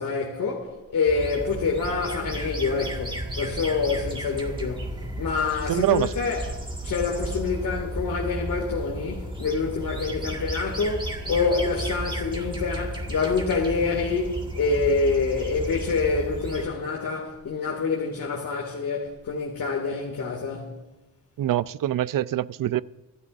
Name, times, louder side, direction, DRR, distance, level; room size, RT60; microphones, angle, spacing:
voice 1, 0.0-6.5 6.8-20.7, left 4 dB, 70° left, 2.3 m, -27 dB
sound 1, 1.1-16.7, right 1 dB, 15° right, 1.8 m, -33 dB
voice 2, 5.7-6.1 21.4-22.8, right 13 dB, 75° right, 0.5 m, -24 dB
25.5 x 12.5 x 2.6 m
wide cardioid pair, 140°, 34 cm